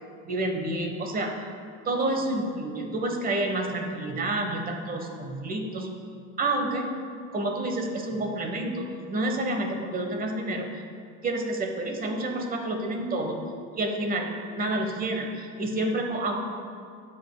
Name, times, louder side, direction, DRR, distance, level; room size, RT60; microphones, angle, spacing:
voice 1, 0.2-1.3 1.8-6.0 6.4-6.9 7.3-10.7 11.2-13.4 13.8-16.4, right 2 dB, 25° right, 3 dB, 1.0 m, -29 dB
11.5 x 7.3 x 2.2 m, 2.3 s
supercardioid pair, 110°, 35 cm